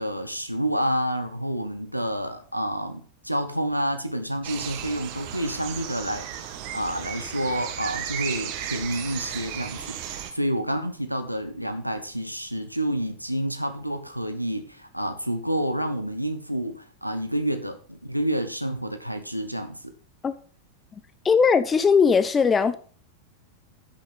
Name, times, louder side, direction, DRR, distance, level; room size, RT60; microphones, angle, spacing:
voice 1, 0.0-6.3 6.7-10.0 10.3-19.9, equal, 90° right, 1.3 m, -29 dB
sound 1, 4.4-10.3, right 10 dB, 45° right, 1.5 m, -35 dB
voice 2, 20.9-22.8, left 6 dB, 20° left, 0.9 m, -20 dB
10.0 x 6.5 x 5.5 m
figure-of-eight pair, 90°, 0 cm